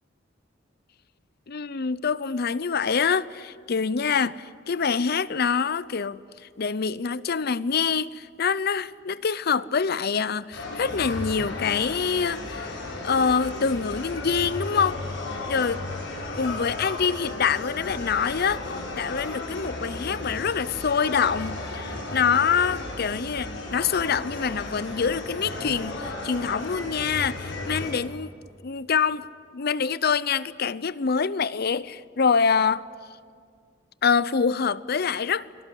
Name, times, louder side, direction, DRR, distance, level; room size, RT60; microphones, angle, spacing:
voice 1, 1.5-6.2 6.6-12.7 13.0-15.0 15.5-15.8 16.3-18.6 19.0-28.3 28.6-29.3 29.5-32.8 34.0-35.5, left 6 dB, 55° left, 0.6 m, -25 dB
sound 1, 10.5-27.9, left 2 dB, 85° left, 6.9 m, -34 dB
26.0 x 19.0 x 10.0 m
head